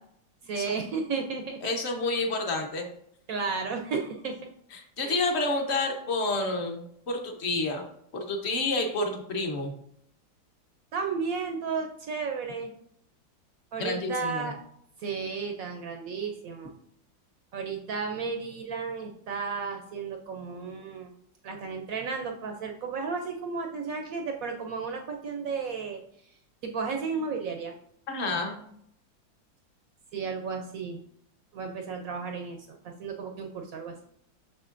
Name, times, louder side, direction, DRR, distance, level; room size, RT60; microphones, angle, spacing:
voice 1, 0.4-1.6 3.3-4.3 5.0-5.3 10.9-12.7 13.7-14.6 15.0-16.7 17.5-21.1 21.4-26.0 26.6-27.7 30.1-31.0 31.5-33.9, right 5 dB, 75° right, 3 dB, 0.8 m, -33 dB
voice 2, 1.6-2.9 4.7-7.8 8.1-9.7 13.8-14.5 28.1-28.6, left 2 dB, 45° left, 3 dB, 0.9 m, -29 dB
6.3 x 6.2 x 2.5 m, 0.70 s
omnidirectional pair, 2.1 m